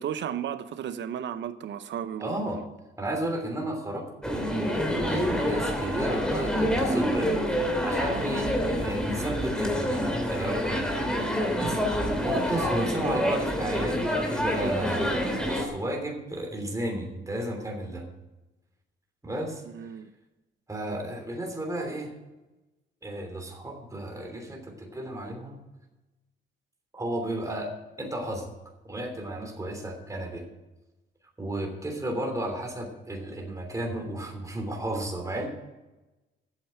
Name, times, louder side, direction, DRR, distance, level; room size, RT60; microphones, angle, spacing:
voice 1, 0.0-2.3 12.3-12.5 19.6-20.1, right 9 dB, 65° right, 0.8 m, -34 dB
voice 2, 2.2-2.6 3.0-7.5 7.8-10.9 11.5-11.8 12.2-18.1 19.2-19.6 20.7-22.1 23.0-25.6 26.9-27.7 28.0-28.5 28.8-30.4 31.4-35.5, right 1 dB, 15° right, 3.1 m, -33 dB
sound 1, 4.2-15.7, equal, 5° left, 2.6 m, -27 dB
9.1 x 7.3 x 9.0 m
cardioid pair, 90°, 20 cm